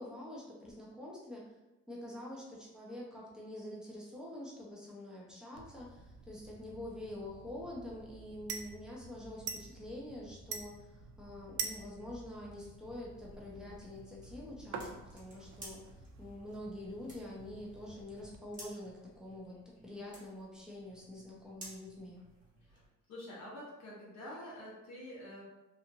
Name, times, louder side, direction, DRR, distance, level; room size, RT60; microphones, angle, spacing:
voice 1, 0.0-1.5 1.9-22.2, left 1 dB, ahead, -5 dB, 0.7 m, -46 dB
sound 1, 5.6-18.4, right 5 dB, 55° right, 0.4 m, -47 dB
sound 2, 12.5-22.9, right 1 dB, 25° right, 1.2 m, -57 dB
voice 2, 23.1-25.4, left 1 dB, 60° left, -5 dB, 1.1 m, -47 dB
2.9 x 2.5 x 2.5 m, 0.99 s
cardioid pair, 115°, 30 cm